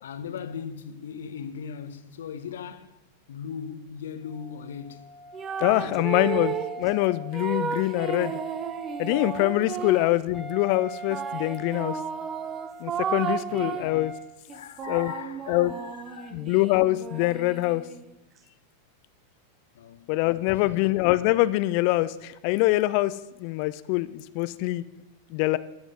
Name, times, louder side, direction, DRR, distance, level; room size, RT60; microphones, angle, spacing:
voice 1, 0.0-3.0 3.3-5.2 5.8-6.2 13.5-14.0 14.5-16.4 19.7-20.1 20.6-21.0 24.8-24.9, left 7 dB, 60° left, 0.9 m, -39 dB
Wind instrument woodwind instrument, 4.3-14.3, right 4 dB, ahead, 1.7 m, -42 dB
sound 1, 5.3-6.8 7.3-10.2 11.1-14.0 14.5-18.1, right 7 dB, 25° right, 0.8 m, -33 dB
voice 2, 5.6-8.3 9.0-12.0 12.8-14.1 14.9-15.1 15.5-15.7 16.3-17.9 20.1-24.8 25.3-25.6, left 18 dB, 45° left, 0.4 m, -24 dB
12.5 x 8.0 x 6.4 m
figure-of-eight pair, 90°, 0 cm